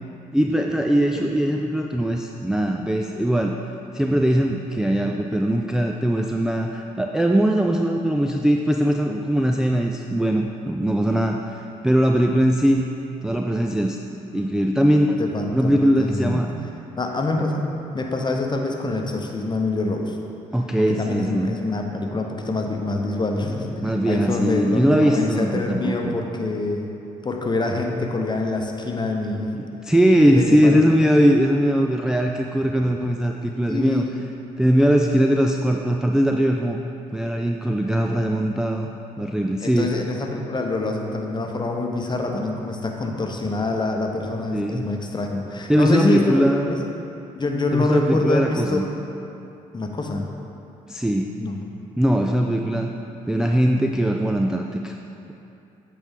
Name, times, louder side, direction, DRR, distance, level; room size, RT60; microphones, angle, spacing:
voice 1, 0.3-3.6 3.9-12.8 13.2-14.0 14.3-15.2 15.5-16.5 20.5-21.6 23.8-26.2 29.5-34.0 34.6-36.8 37.1-38.9 39.2-39.9 44.5-44.9 45.7-46.9 47.7-48.9 50.9-51.3 52.0-52.9 53.3-55.0, equal, 5° right, 2 dB, 0.3 m, -20 dB
voice 2, 15.2-16.5 17.0-17.6 17.9-20.2 20.8-26.9 27.2-29.5 30.3-30.8 33.7-34.1 37.9-38.0 39.6-46.8 47.3-48.8 49.7-50.3 51.4-51.6, left 2 dB, 25° left, 2 dB, 0.9 m, -25 dB
8.0 x 4.6 x 3.6 m, 2.8 s
hypercardioid pair, 50°, 18 cm